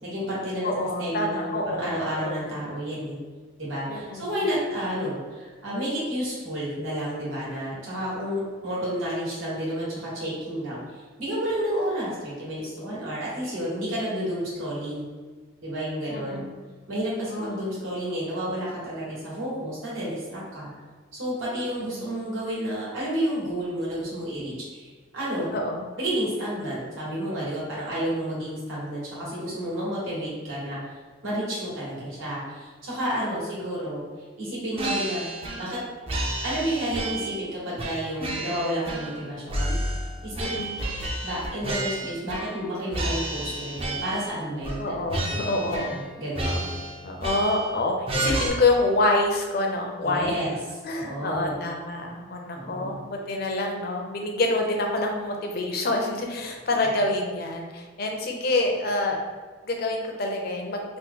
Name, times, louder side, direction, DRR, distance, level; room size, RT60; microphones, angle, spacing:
voice 1, 0.0-0.7 1.0-3.2 3.6-15.1 15.6-16.4 16.9-20.7 21.1-25.5 26.0-30.8 31.2-34.0 34.4-35.2 35.6-35.8 36.4-39.8 40.2-40.6 40.9-44.8 45.3-45.4 45.9-46.7 50.0-50.5 50.9-51.6 52.5-53.0 56.8-56.9, equal, 80° right, -7 dB, 1.3 m, -31 dB
voice 2, 0.6-1.9 2.2-2.4 3.9-4.3 16.1-16.5 17.3-17.6 21.8-22.1 25.5-25.8 40.4-40.8 44.8-45.9 46.5-46.6 47.0-50.4 50.8-59.2 59.7-60.8, left 2 dB, 50° left, 1 dB, 0.5 m, -27 dB
sound 1, 34.8-35.8 36.1-37.4 37.8-39.2 39.5-42.7 42.9-44.3 44.6-44.8 45.1-46.1 46.3-47.7 48.1-48.5, right 1 dB, 30° right, 0.4 m, -30 dB
2.9 x 2.1 x 3.6 m, 1.4 s
head